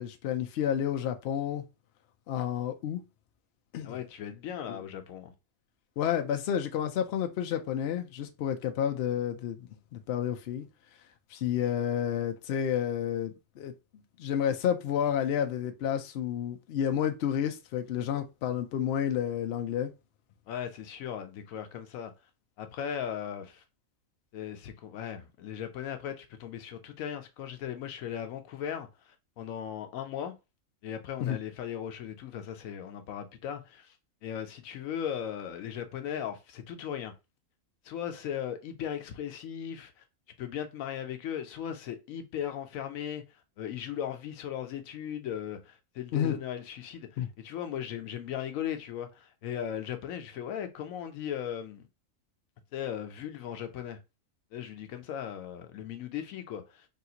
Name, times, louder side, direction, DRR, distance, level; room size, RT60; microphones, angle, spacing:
voice 1, 0.0-1.6 2.3-3.0 3.7-4.0 4.7-4.8 6.0-10.7 11.3-13.7 14.2-19.9 31.2-31.4 46.1-46.3 47.2-47.3, left 9 dB, 65° left, 0.7 m, -30 dB
voice 2, 3.8-5.3 20.5-22.1 22.6-23.6 24.3-30.3 30.8-34.0 34.2-37.1 37.8-40.0 40.4-51.9 52.7-54.0 54.5-56.9, left 9 dB, 85° left, 1.0 m, -37 dB
3.6 x 2.4 x 2.7 m
omnidirectional pair, 1.4 m